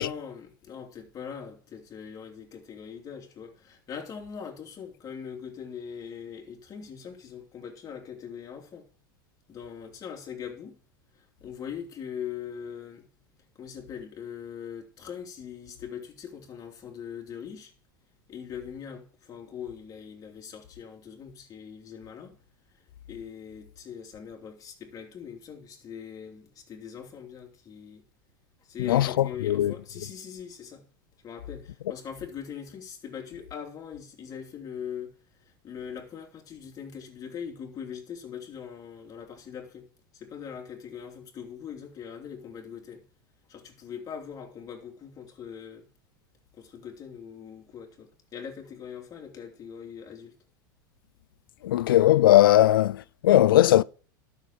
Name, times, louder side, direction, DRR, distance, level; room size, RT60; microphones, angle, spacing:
voice 1, 0.0-8.9 9.5-10.8 11.1-13.1 13.5-17.7 18.3-22.4 22.8-28.0 28.6-30.8 31.2-39.9 40.1-43.0 43.5-45.9 46.5-50.3, left 7 dB, 30° left, 3.1 m, -41 dB
voice 2, 28.8-29.7 51.6-53.8, left 13 dB, 80° left, 0.4 m, -19 dB
12.0 x 6.8 x 5.3 m
hypercardioid pair, 100°, 11 cm